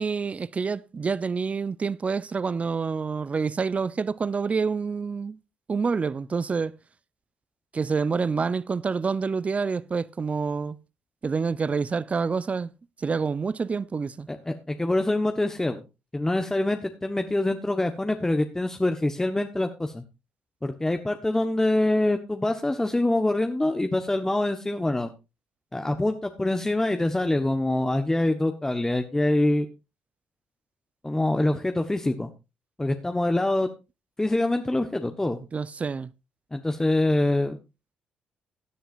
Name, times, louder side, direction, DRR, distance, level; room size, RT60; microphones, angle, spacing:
voice 1, 0.0-5.4 5.7-6.7 7.7-10.8 11.2-12.7 13.0-14.3 35.5-36.1, right 5 dB, 35° right, 0.7 m, -27 dB
voice 2, 14.3-15.8 16.1-20.0 20.6-25.1 25.7-29.7 31.0-32.3 32.8-33.7 34.2-35.4 36.5-37.6, left 1 dB, 15° left, 1.2 m, -25 dB
16.5 x 10.0 x 2.5 m
supercardioid pair, 60°, 4 cm